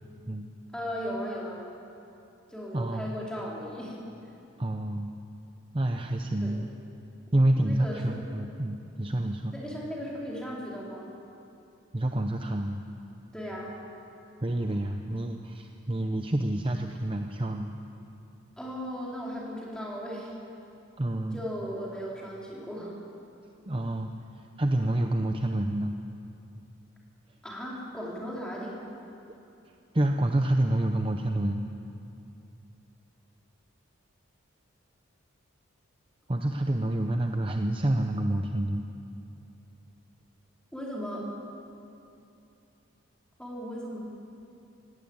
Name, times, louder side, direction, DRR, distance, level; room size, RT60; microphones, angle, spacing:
voice 1, 0.7-1.7 2.5-4.0 6.4-6.6 7.6-8.2 9.5-11.1 13.3-13.7 18.6-20.3 21.3-22.9 27.4-28.8 40.7-41.3 43.4-44.0, equal, 5° left, -5 dB, 4.1 m, -36 dB
voice 2, 2.7-3.1 4.6-5.1 5.7-6.7 7.3-9.5 11.9-12.8 14.4-17.7 21.0-21.4 23.7-24.1 24.6-26.0 29.9-31.7 36.3-38.8, right 1 dB, 25° right, 4 dB, 0.7 m, -28 dB
19.0 x 17.5 x 8.8 m, 2.7 s
head